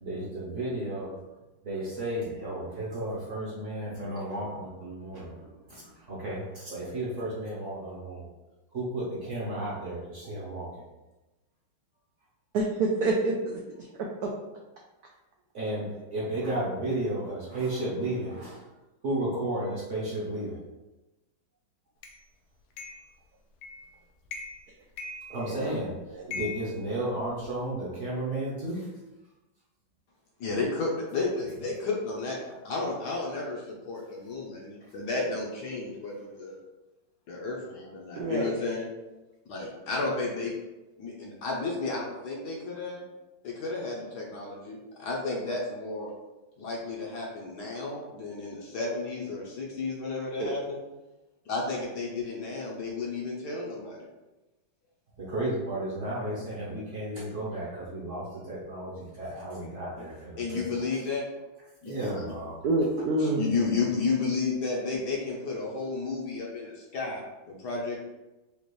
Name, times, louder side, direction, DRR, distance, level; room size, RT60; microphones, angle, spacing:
voice 1, 0.0-1.1 1.6-5.8 6.1-8.3 8.7-10.7 15.5-18.6 19.0-20.6 25.3-25.9 26.3-28.9 55.2-60.6 61.9-62.5, right 1 dB, 50° right, -6 dB, 1.0 m, -33 dB
voice 2, 12.5-13.6 25.3-25.7 26.1-26.2 38.2-38.5 50.4-50.5 62.6-63.5, right 2 dB, 80° right, -1 dB, 0.8 m, -27 dB
sound 1, 22.0-22.2 22.8-23.1 23.6-23.9 24.3-24.7 25.0-25.8 26.3-27.6, left 4 dB, 85° left, 1.5 m, -40 dB
voice 3, 30.4-32.4 32.6-36.6 37.3-38.9 39.5-40.5 41.0-43.1 43.4-46.1 46.6-50.8 51.4-54.1 60.4-61.2 61.8-62.3 63.2-68.0, left 3 dB, 65° left, -2 dB, 1.1 m, -32 dB
5.2 x 2.4 x 3.1 m, 1.0 s
omnidirectional pair, 2.2 m